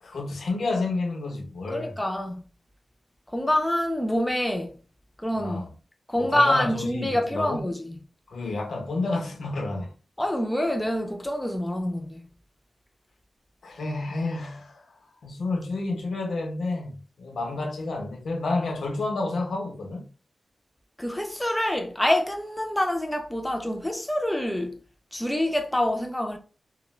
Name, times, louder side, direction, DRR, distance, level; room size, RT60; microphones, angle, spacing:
voice 1, 0.0-1.9 5.3-5.7 6.2-7.7 8.3-9.9 13.6-14.8 15.2-20.1, left 3 dB, 85° left, 0.6 m, -30 dB
voice 2, 1.7-2.4 3.3-4.7 5.2-5.6 6.1-7.9 10.2-12.2 21.0-24.8 25.1-26.4, left 1 dB, 10° left, 0.4 m, -26 dB
2.3 x 2.1 x 3.1 m
wide cardioid pair, 90°, 0 cm